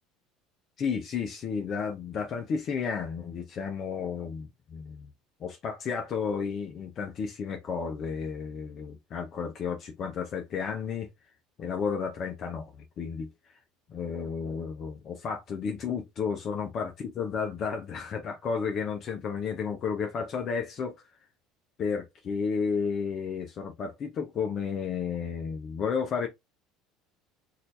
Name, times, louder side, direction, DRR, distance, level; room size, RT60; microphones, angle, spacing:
voice 1, 0.8-5.1 5.4-11.1 11.6-13.3 13.9-20.9 21.8-26.3, left 6 dB, 50° left, 0.7 m, -32 dB
4.0 x 2.7 x 2.6 m
supercardioid pair, 90°, 0 cm